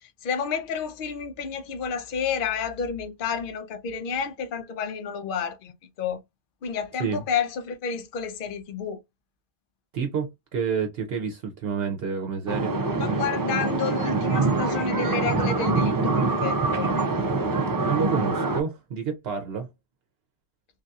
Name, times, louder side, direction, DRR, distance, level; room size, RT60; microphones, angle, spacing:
voice 1, 0.2-6.2 6.6-9.0 13.0-16.9, left 6 dB, 55° left, 0.7 m, -30 dB
voice 2, 9.9-12.7 17.8-19.7, right 6 dB, 65° right, 0.8 m, -29 dB
sound 1, 12.5-18.6, right 3 dB, 35° right, 0.3 m, -25 dB
3.3 x 2.6 x 2.3 m
omnidirectional pair, 1.1 m